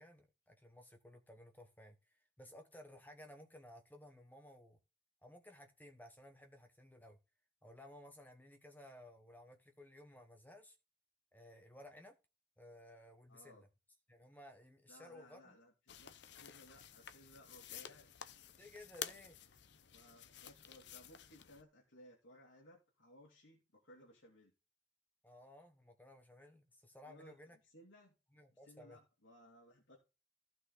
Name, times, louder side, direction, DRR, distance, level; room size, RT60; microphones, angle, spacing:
voice 1, 0.0-4.8 5.2-7.2 7.6-10.8 11.3-12.1 12.6-13.7 14.1-15.6 18.6-19.4 25.2-27.6 28.3-29.0, left 1 dB, 10° left, 1.2 m, -57 dB
voice 2, 13.3-13.7 14.9-18.3 19.9-24.5 27.1-28.2 28.6-30.0, left 1 dB, 80° left, 3.1 m, -61 dB
sound 1, 15.9-21.6, left 9 dB, 65° left, 0.7 m, -51 dB
15.0 x 6.0 x 3.8 m
head